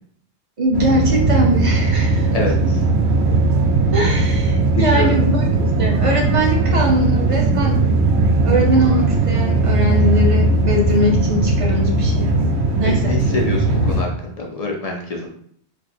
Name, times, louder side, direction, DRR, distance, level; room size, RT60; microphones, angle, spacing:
voice 1, 0.6-2.3 3.9-5.5 5.8-7.8 8.4-12.3 12.8-13.1, right 1 dB, 35° right, -1 dB, 0.7 m, -21 dB
sound 1, 0.7-14.0, right 2 dB, 75° right, 0.9 m, -18 dB
voice 2, 2.3-2.8 4.7-5.1 12.8-15.3, left 3 dB, 45° left, 0 dB, 0.5 m, -25 dB
2.7 x 2.5 x 4.1 m, 0.63 s
omnidirectional pair, 1.1 m